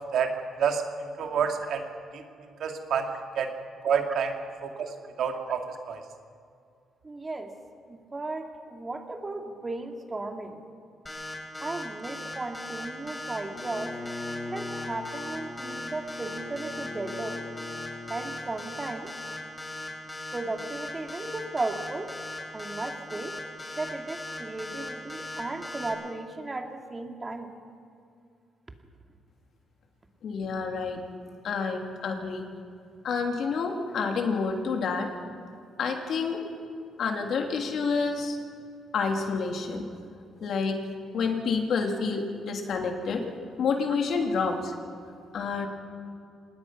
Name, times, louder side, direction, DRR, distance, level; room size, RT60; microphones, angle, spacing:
voice 1, 0.6-1.8 2.1-2.2 2.6-3.5 3.8-4.3 4.6-6.0, right 7 dB, 70° right, 4 dB, 2.5 m, -28 dB
voice 2, 7.0-7.5 7.9-10.6 11.6-14.0 14.5-17.4 18.1-19.1 20.3-22.1 22.5-23.3 23.8-27.6, right 2 dB, 25° right, 4 dB, 2.5 m, -35 dB
sound 1, 11.1-25.9, left 1 dB, 15° left, 5.0 m, -38 dB
Bowed string instrument, 13.5-18.3, left 3 dB, 35° left, 2.5 m, -40 dB
voice 3, 30.2-31.0 31.4-32.4 33.0-35.1 35.8-36.4 37.0-38.4 38.9-39.8 40.4-40.8 41.1-43.2 43.6-44.7 45.3-45.7, left 5 dB, 65° left, 3 dB, 3.1 m, -28 dB
26.5 x 19.5 x 6.0 m, 2.4 s
cardioid pair, 90°, 0 cm